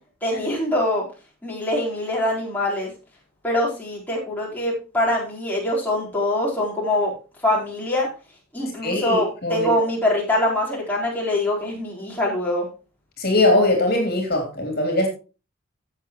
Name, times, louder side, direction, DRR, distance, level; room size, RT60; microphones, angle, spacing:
voice 1, 0.2-1.0 1.4-2.9 3.4-7.1 7.4-8.1 8.5-12.7, left 1 dB, 10° left, -5 dB, 4.1 m, -23 dB
voice 2, 8.8-9.7 13.2-15.1, left 1 dB, 45° left, 3 dB, 3.2 m, -21 dB
15.5 x 7.4 x 3.1 m, 0.32 s
head